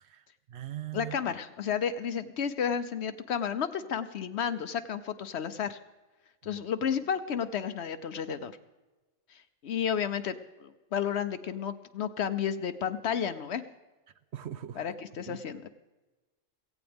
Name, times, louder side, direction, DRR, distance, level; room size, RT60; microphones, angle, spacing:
voice 1, 0.0-1.2 6.4-6.6 14.3-14.8 15.3-15.4, right 12 dB, 65° right, 13 dB, 0.8 m, -41 dB
voice 2, 0.9-5.8 6.4-8.5 9.6-10.3 10.6-13.6 14.8-15.7, left 8 dB, 65° left, 12 dB, 0.9 m, -32 dB
16.5 x 16.0 x 3.5 m, 1.2 s
omnidirectional pair, 1.3 m